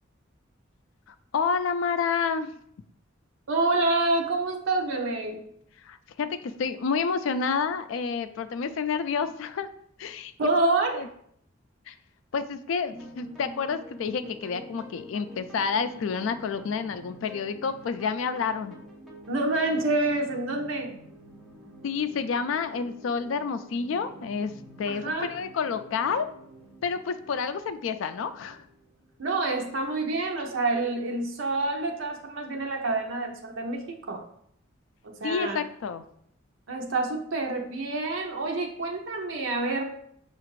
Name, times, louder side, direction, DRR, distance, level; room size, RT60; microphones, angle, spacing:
voice 1, 1.3-2.6 5.8-9.7 10.0-10.5 10.9-11.1 11.9-12.0 12.3-18.8 21.8-26.3 26.8-28.6 35.2-36.0, left 5 dB, 90° left, 11 dB, 0.4 m, -29 dB
voice 2, 3.5-5.4 10.4-11.1 19.3-21.0 24.9-25.3 29.2-34.2 35.0-35.6 36.7-39.9, right 2 dB, 80° right, 1 dB, 0.6 m, -27 dB
sound 1, 12.9-29.8, equal, ahead, 0.8 m, -48 dB
5.7 x 2.5 x 3.1 m, 0.68 s
head